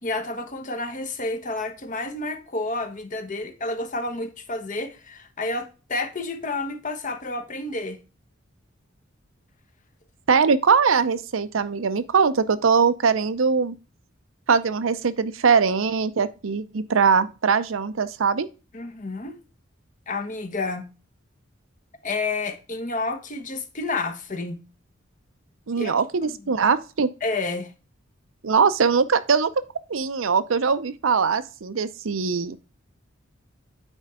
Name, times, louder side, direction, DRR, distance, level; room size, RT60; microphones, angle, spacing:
voice 1, 0.0-8.0 18.7-19.4 20.1-20.9 22.0-24.6 25.8-25.9 26.2-26.3 27.2-27.7, left 3 dB, 40° left, 1.0 m, -30 dB
voice 2, 10.3-13.7 14.5-18.5 25.7-27.1 28.4-29.5 29.9-32.6, right 5 dB, 80° right, 0.6 m, -21 dB
9.1 x 4.4 x 3.7 m
head